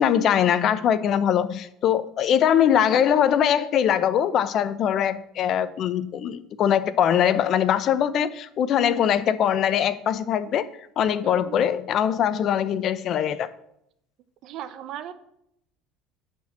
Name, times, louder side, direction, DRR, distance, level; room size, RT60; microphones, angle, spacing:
voice 1, 0.0-10.7 11.0-13.5, left 9 dB, 50° left, 14 dB, 0.8 m, -22 dB
voice 2, 11.2-11.6 14.4-15.1, right 11 dB, 60° right, 12 dB, 1.0 m, -37 dB
10.5 x 4.6 x 7.4 m, 0.76 s
supercardioid pair, 100°, 0 cm